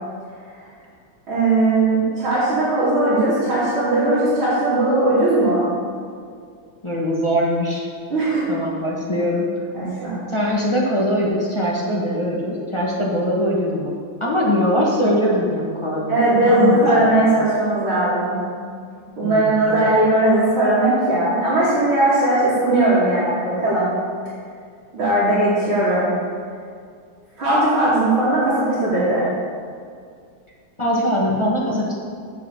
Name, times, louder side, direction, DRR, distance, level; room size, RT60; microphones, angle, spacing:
voice 1, 1.3-5.6 8.1-8.5 9.7-10.1 16.1-18.4 19.2-23.9 24.9-26.1 27.4-29.3, right 2 dB, 65° right, -12 dB, 3.7 m, -18 dB
voice 2, 6.8-7.8 8.5-9.5 10.3-13.9 14.2-17.2 19.2-19.9 30.8-31.9, equal, 20° left, -4 dB, 1.1 m, -22 dB
7.8 x 6.5 x 6.8 m, 2.2 s
omnidirectional pair, 2.4 m